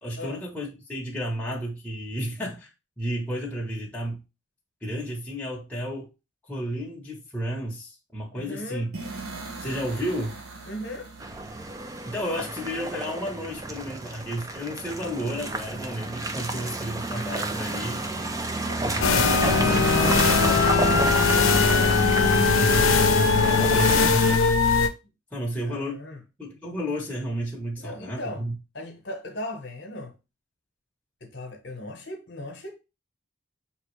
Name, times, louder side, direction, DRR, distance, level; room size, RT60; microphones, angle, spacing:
voice 1, 0.0-2.7 3.0-4.2 4.8-6.1 6.5-8.9 9.6-10.4 12.0-18.0 18.8-20.8 21.8-22.0 22.3-24.4 25.3-26.0 26.4-28.6, equal, 5° left, 1.0 m, -32 dB
voice 2, 8.3-8.9 10.6-11.1 18.6-18.9 21.5-22.0 25.6-26.2 27.8-28.5 28.7-30.2 31.2-32.8, left 1 dB, 55° left, 1.1 m, -37 dB
sound 1, 8.9-12.8, right 3 dB, 90° right, 1.0 m, -41 dB
Car passing by / Engine, 11.2-24.4, right 2 dB, 15° right, 0.4 m, -29 dB
sound 2, 19.0-24.9, left 5 dB, 80° left, 0.6 m, -20 dB
5.6 x 3.0 x 3.1 m
head